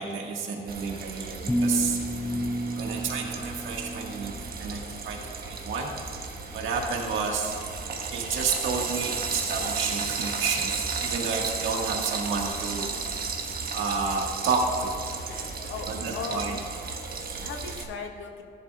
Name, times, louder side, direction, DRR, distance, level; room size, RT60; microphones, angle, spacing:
voice 1, 0.0-2.0 2.7-5.9 6.5-7.6 8.1-12.9 13.7-14.9 15.9-16.5 17.0-17.4, right 5 dB, 75° right, 0 dB, 1.6 m, -30 dB
Frying (food), 0.7-17.8, right 4 dB, 50° right, 1.2 m, -34 dB
sound 1, 1.5-4.6, equal, 5° left, 0.3 m, -30 dB
voice 2, 15.3-16.6 17.4-18.4, left 5 dB, 85° left, 3 dB, 1.2 m, -37 dB
14.0 x 11.0 x 2.3 m, 2.7 s
cardioid pair, 90°, 20 cm